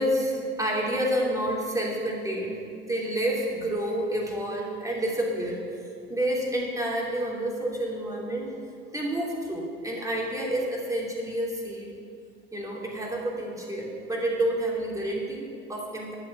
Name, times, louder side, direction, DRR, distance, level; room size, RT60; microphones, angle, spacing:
voice 1, 0.0-2.6 2.9-5.6 6.1-8.6 8.9-11.9 12.5-16.1, right 1 dB, 10° right, -3 dB, 2.9 m, -29 dB
11.5 x 7.0 x 7.7 m, 2.3 s
figure-of-eight pair, 65°, 33 cm